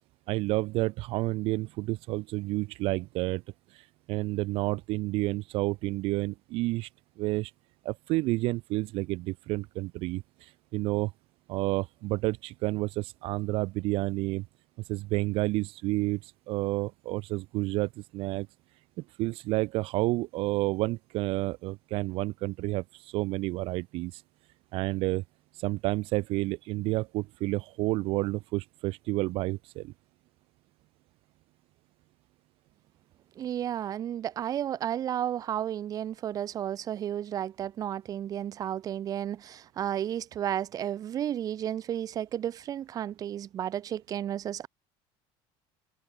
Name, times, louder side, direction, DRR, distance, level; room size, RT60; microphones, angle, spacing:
voice 1, 0.3-3.4 3.7-6.9 7.2-7.5 7.8-11.1 11.5-14.4 14.9-18.5 19.2-24.2 24.7-25.2 25.5-29.9, right 20 dB, 55° right, 0.5 m, -30 dB
voice 2, 33.4-44.7, right 10 dB, 30° right, 0.8 m, -32 dB
cardioid pair, 150°, 12 cm